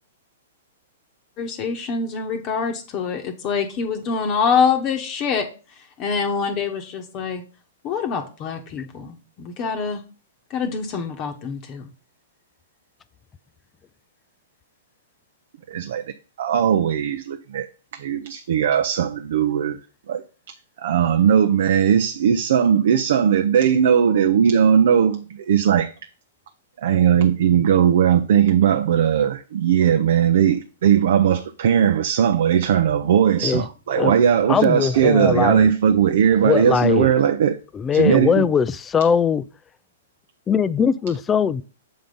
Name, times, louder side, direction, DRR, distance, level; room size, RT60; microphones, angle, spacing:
voice 1, 1.4-5.5 6.0-7.4 7.8-10.0 10.5-11.9, left 6 dB, 35° left, 1.0 m, -25 dB
voice 2, 15.7-16.0 16.4-17.7 17.9-19.8 20.1-20.2 20.8-25.9 26.8-37.6 37.9-38.5, right 8 dB, 65° right, 0.5 m, -18 dB
voice 3, 34.5-35.7 36.4-37.1 37.7-39.4 40.5-41.6, left 7 dB, 20° left, 0.4 m, -20 dB
7.0 x 3.8 x 5.2 m
hypercardioid pair, 120°, 0 cm